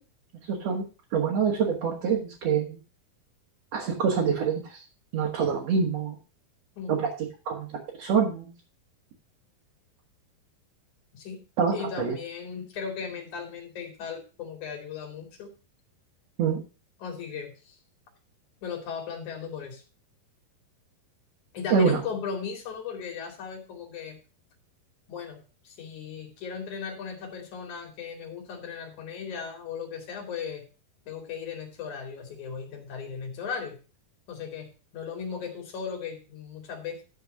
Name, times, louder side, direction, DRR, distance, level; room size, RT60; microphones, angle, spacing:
voice 1, 0.5-0.8 1.1-2.8 3.7-4.8 5.1-6.2 6.9-7.1 7.5-7.7 8.0-8.5 11.6-12.2 16.4-16.6 21.7-22.0, right 6 dB, 50° right, -2 dB, 2.5 m, -25 dB
voice 2, 11.7-15.5 17.0-17.8 18.6-19.8 21.5-24.2 25.1-30.6 31.1-33.8 34.3-34.7 34.9-37.0, left 6 dB, 55° left, 2 dB, 3.8 m, -37 dB
12.0 x 4.5 x 6.5 m, 0.34 s
omnidirectional pair, 4.4 m